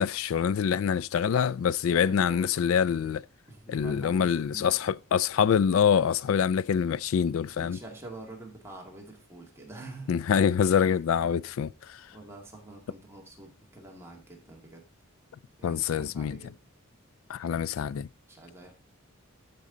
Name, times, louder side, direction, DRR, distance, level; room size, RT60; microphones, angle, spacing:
voice 1, 0.0-3.2 3.7-7.8 10.1-12.0 15.6-16.4 17.3-18.1, left 7 dB, 75° left, 0.3 m, -25 dB
voice 2, 1.9-2.7 3.5-5.0 7.5-10.2 10.7-11.0 12.1-14.9 15.6-16.6 18.3-18.7, right 2 dB, 10° right, 2.0 m, -46 dB
12.0 x 5.5 x 3.8 m
head